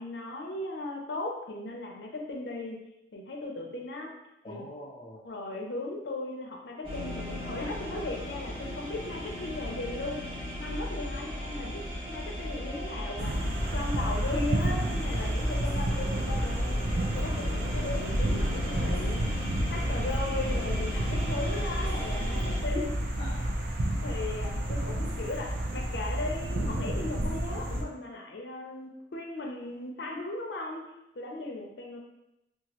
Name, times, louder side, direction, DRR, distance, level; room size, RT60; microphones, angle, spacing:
voice 1, 0.0-2.8 3.1-4.1 4.5-4.6 5.2-13.4 13.7-19.2 19.7-23.0 24.0-30.9 31.2-32.0, left 2 dB, 85° left, 0 dB, 0.5 m, -37 dB
voice 2, 4.4-5.4 22.2-22.6 23.2-23.6, left 1 dB, 30° left, -2 dB, 0.3 m, -45 dB
sound 1, 6.8-22.6, left 1 dB, 30° right, 1.0 m, -36 dB
sound 2, 13.2-27.8, right 1 dB, 65° right, 0.5 m, -30 dB
2.9 x 2.4 x 2.9 m, 0.90 s
head